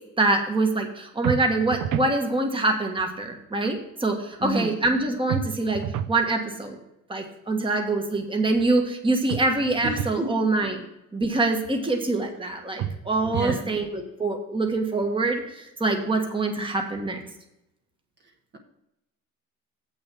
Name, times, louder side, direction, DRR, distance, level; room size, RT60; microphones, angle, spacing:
voice 1, 0.2-6.8 7.1-10.8 11.1-17.2, right 2 dB, 15° right, 3 dB, 1.5 m, -25 dB
sound 1, 1.2-2.2 5.3-6.2 9.3-10.2 12.8-13.7, right 10 dB, 90° right, 0.6 m, -30 dB
voice 2, 4.4-4.7 9.8-10.4 13.2-13.7, right 2 dB, 30° right, 1 dB, 1.4 m, -30 dB
8.0 x 6.4 x 6.1 m, 0.85 s
cardioid pair, 120°, 34 cm